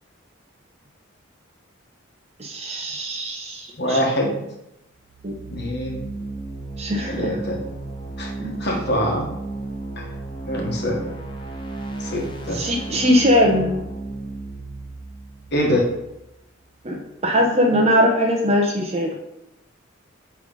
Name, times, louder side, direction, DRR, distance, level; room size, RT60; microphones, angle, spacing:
voice 1, 2.4-4.0 5.2-5.4 6.8-7.3 8.4-8.5 12.5-13.8 16.8-19.1, equal, 30° right, 0 dB, 0.8 m, -20 dB
voice 2, 3.8-4.4 5.5-6.0 7.1-7.6 8.2-8.3 8.6-9.2 10.0-10.1 10.5-11.0 12.0-12.6 15.5-15.9, equal, 55° left, -1 dB, 1.3 m, -24 dB
sound 1, 5.0-16.7, right 2 dB, 25° left, 0.7 m, -34 dB
8.7 x 3.2 x 3.9 m, 0.86 s
head